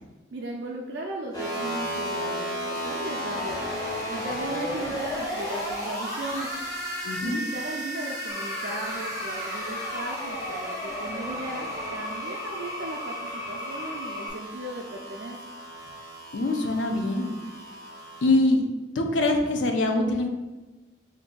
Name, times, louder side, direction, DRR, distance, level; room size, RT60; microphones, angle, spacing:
voice 1, 0.3-3.7 4.1-6.5 7.2-15.4, right 1 dB, 70° right, 0 dB, 0.4 m, -36 dB
sound 1, 1.3-18.3, equal, 20° left, 0.8 m, -34 dB
voice 2, 7.0-7.4 16.3-17.3 18.2-18.7 18.9-20.3, left 2 dB, 80° left, 4 dB, 0.5 m, -24 dB
sound 2, 8.3-14.3, left 1 dB, 15° right, 0.6 m, -36 dB
3.4 x 2.6 x 3.8 m, 1.1 s
head